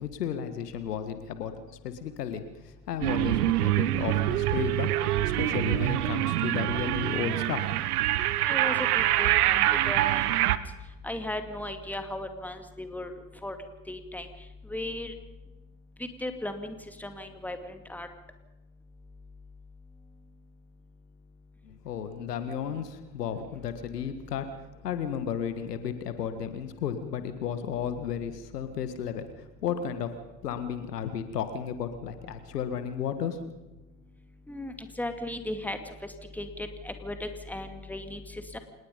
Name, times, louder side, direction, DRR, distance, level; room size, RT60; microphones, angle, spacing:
voice 1, 0.0-1.5 1.8-4.9 5.2-7.8 21.6-30.1 30.4-33.5, left 8 dB, 75° left, 10 dB, 1.8 m, -33 dB
sound 1, 3.0-10.6, right 14 dB, 65° right, 1.1 m, -25 dB
voice 2, 8.4-10.3 11.0-13.1 13.4-13.6 13.9-14.3 14.7-15.1 16.2-18.1 34.5-35.8 36.4-38.6, left 1 dB, 5° left, 7 dB, 2.5 m, -36 dB
26.5 x 20.0 x 5.3 m, 1.1 s
figure-of-eight pair, 75°, 48 cm